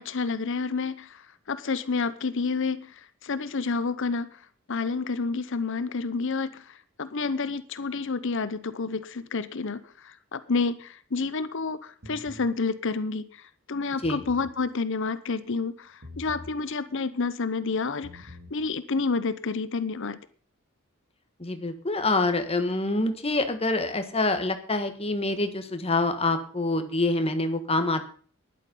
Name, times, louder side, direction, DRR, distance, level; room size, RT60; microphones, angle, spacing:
voice 1, 0.0-4.4 4.7-20.2, left 4 dB, 65° left, 14 dB, 0.8 m, -29 dB
sound 1, 12.0-12.5 13.9-14.6 16.0-16.6 17.9-18.6, left 1 dB, 75° right, 2.6 m, -44 dB
voice 2, 21.4-28.0, left 2 dB, 30° left, 8 dB, 1.5 m, -26 dB
12.5 x 11.0 x 5.4 m, 0.43 s
head